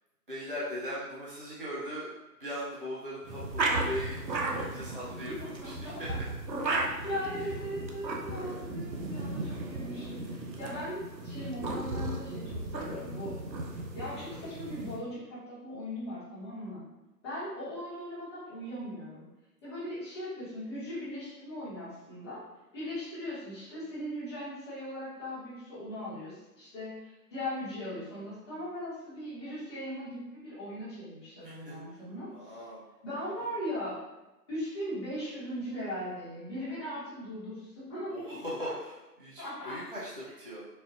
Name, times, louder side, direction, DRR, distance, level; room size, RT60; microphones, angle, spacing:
voice 1, 0.3-2.1 2.4-6.2 7.4-7.5 8.3-8.5 31.4-32.0 32.3-32.8 38.1-40.7, equal, 35° right, -8 dB, 0.4 m, -40 dB
sound 1, 3.2-15.0, right 2 dB, 90° right, 0.7 m, -35 dB
voice 2, 5.6-6.2 7.0-13.3 13.9-16.8 17.2-19.2 19.6-22.4 22.7-32.6 33.0-34.0 34.5-38.4 39.4-39.8, equal, 15° left, -11 dB, 1.0 m, -39 dB
4.1 x 2.4 x 2.5 m, 1.0 s
figure-of-eight pair, 140°, 50 cm